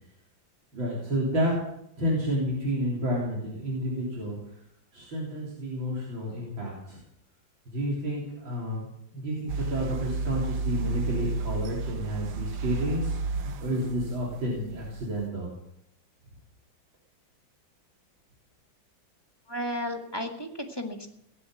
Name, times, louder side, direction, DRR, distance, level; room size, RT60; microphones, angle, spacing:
voice 1, 0.7-1.5 2.0-4.4 4.9-7.0 7.7-8.9 9.1-15.5, equal, 80° right, -5 dB, 4.4 m, -30 dB
sound 1, 9.5-15.3, right 4 dB, 65° right, 1.3 m, -32 dB
voice 2, 19.5-21.1, equal, 15° left, 2 dB, 1.7 m, -33 dB
18.0 x 9.5 x 7.9 m, 0.75 s
omnidirectional pair, 2.1 m